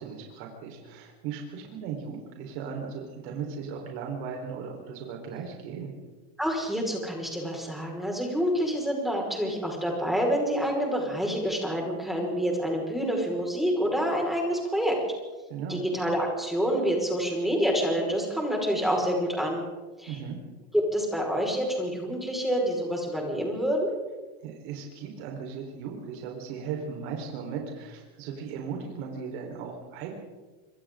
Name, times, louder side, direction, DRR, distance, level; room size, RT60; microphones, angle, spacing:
voice 1, 0.0-5.9 15.5-15.8 20.1-20.4 24.4-30.1, right 6 dB, 70° right, 1 dB, 4.6 m, -37 dB
voice 2, 6.4-15.0 15.7-19.6 20.0-20.2 20.7-23.9, equal, ahead, -1 dB, 5.3 m, -27 dB
26.5 x 25.0 x 3.9 m, 1.2 s
cardioid pair, 150°, 33 cm